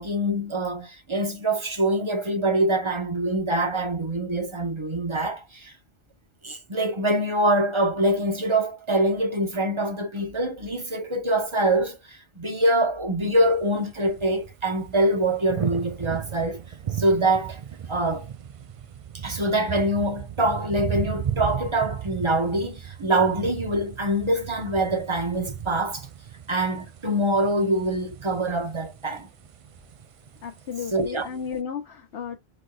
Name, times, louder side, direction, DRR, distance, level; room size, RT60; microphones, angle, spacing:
voice 1, 0.0-5.7 6.4-16.6 17.0-17.6 17.9-18.3 19.1-26.1 26.5-29.3 30.9-31.3, right 1 dB, 30° right, 1.0 m, -24 dB
sound 1, 13.4-31.6, right 9 dB, 55° right, 0.3 m, -36 dB
voice 2, 30.4-32.4, left 7 dB, 85° left, 1.1 m, -34 dB
4.6 x 4.0 x 2.3 m
omnidirectional pair, 1.0 m